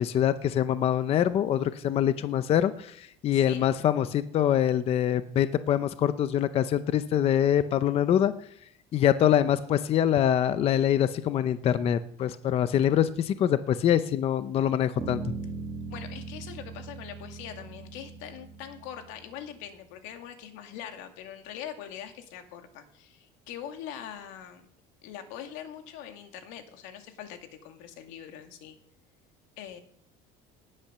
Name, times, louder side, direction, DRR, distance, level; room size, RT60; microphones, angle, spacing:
voice 1, 0.0-8.3 8.9-15.2, left 10 dB, 30° left, 12 dB, 0.6 m, -24 dB
voice 2, 3.3-3.8 15.9-24.7 25.0-28.8 29.6-29.8, left 9 dB, 85° left, 6 dB, 2.3 m, -42 dB
Bass guitar, 15.0-19.4, right 3 dB, 15° right, 2.1 m, -39 dB
18.5 x 8.8 x 6.7 m, 0.72 s
cardioid pair, 175°, 19 cm